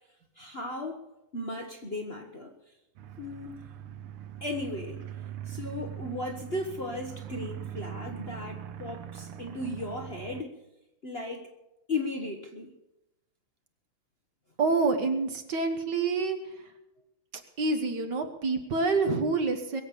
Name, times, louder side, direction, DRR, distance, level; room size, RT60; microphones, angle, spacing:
voice 1, 0.4-1.0 1.3-2.5 3.2-3.6 4.4-5.0 5.5-10.6 11.0-11.5 11.9-12.7, left 2 dB, 35° left, 3 dB, 1.1 m, -36 dB
sound 1, 3.0-10.4, right 10 dB, 90° right, 1.8 m, -41 dB
voice 2, 14.6-16.4 17.6-19.8, right 3 dB, 55° right, 6 dB, 1.8 m, -27 dB
22.0 x 7.9 x 6.8 m, 0.92 s
omnidirectional pair, 2.4 m